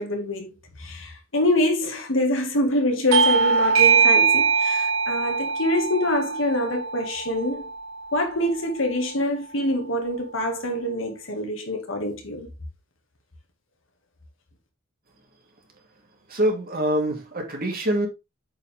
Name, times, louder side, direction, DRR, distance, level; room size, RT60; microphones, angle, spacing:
voice 1, 0.0-7.6 8.1-12.5, left 1 dB, 65° left, 2.1 m, -25 dB
Bell / Doorbell, 3.1-8.2, right 5 dB, 75° right, 0.9 m, -22 dB
voice 2, 16.3-18.1, right 1 dB, 45° right, 2.6 m, -24 dB
8.3 x 4.9 x 3.6 m
head